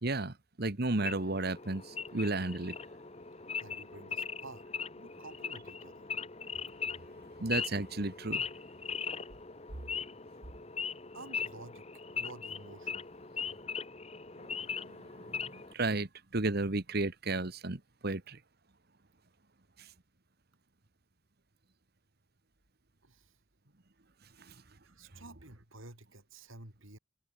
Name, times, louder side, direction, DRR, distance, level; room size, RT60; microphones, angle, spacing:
voice 1, 0.0-2.7 7.4-8.4 15.5-18.4, right 2 dB, 50° right, 1.5 m, -33 dB
Wild animals / Idling, 1.0-15.7, left 6 dB, 30° left, 1.6 m, -40 dB
voice 2, 3.6-4.7 5.0-6.1 11.1-11.8 12.1-13.0 23.0-23.3 23.7-23.8 24.8-27.0, right 2 dB, 85° right, 5.5 m, -51 dB
head